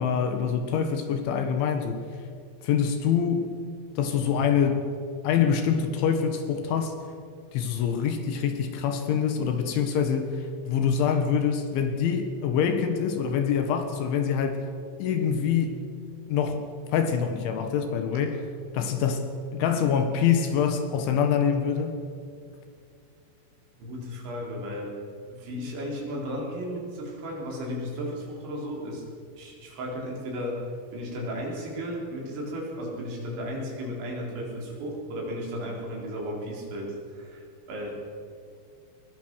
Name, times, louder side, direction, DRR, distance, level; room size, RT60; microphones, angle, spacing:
voice 1, 0.0-2.0 2.6-3.5 4.0-4.9 5.2-6.9 7.5-14.6 15.0-15.8 16.3-16.6 16.9-18.4 18.7-21.9, left 7 dB, 70° left, 6 dB, 3.6 m, -25 dB
voice 2, 23.8-24.9 25.3-29.0 29.3-30.7 30.9-38.0, equal, 60° right, -2 dB, 6.5 m, -34 dB
21.0 x 20.5 x 6.4 m, 2.3 s
omnidirectional pair, 6.0 m